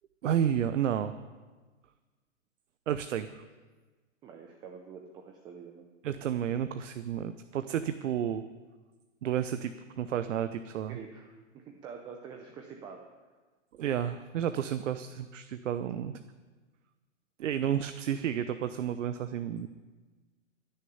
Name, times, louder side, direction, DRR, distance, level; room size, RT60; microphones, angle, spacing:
voice 1, 0.2-1.1 2.9-3.3 6.0-8.4 9.2-11.0 13.7-16.2 17.4-19.7, right 9 dB, 65° right, 10 dB, 0.8 m, -31 dB
voice 2, 4.2-5.8 10.9-13.0, right 6 dB, 10° right, 3 dB, 0.5 m, -46 dB
16.0 x 6.8 x 9.4 m, 1.3 s
hypercardioid pair, 150°, 39 cm